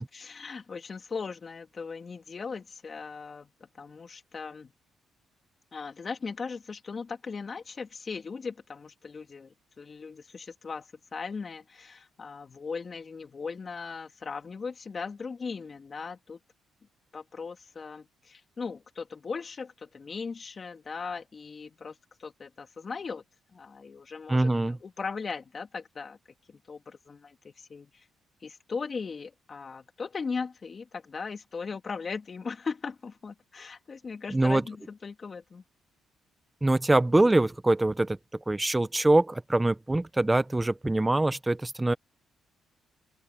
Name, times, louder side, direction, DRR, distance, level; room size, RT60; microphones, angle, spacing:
voice 1, 0.0-3.5 3.8-4.7 5.7-16.4 17.1-23.2 23.5-26.2 26.5-28.1 28.4-35.6, left 5 dB, 40° left, 3.0 m, -38 dB
voice 2, 24.3-24.8 34.3-34.6 36.6-38.2 38.5-41.9, right 2 dB, 15° right, 1.0 m, -24 dB
open air
cardioid pair, 90°, 0 cm